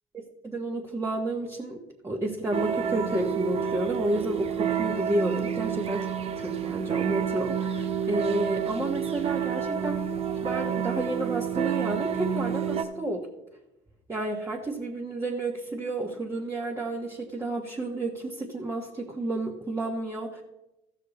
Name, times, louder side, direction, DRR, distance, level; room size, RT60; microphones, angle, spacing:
voice 1, 0.1-1.8 2.0-10.0 10.4-13.3 14.1-20.4, right 2 dB, 15° right, -3 dB, 1.4 m, -31 dB
sound 1, 2.5-12.8, right 8 dB, 40° right, 0.8 m, -29 dB
14.5 x 6.5 x 4.1 m, 0.94 s
supercardioid pair, 85°, 15 cm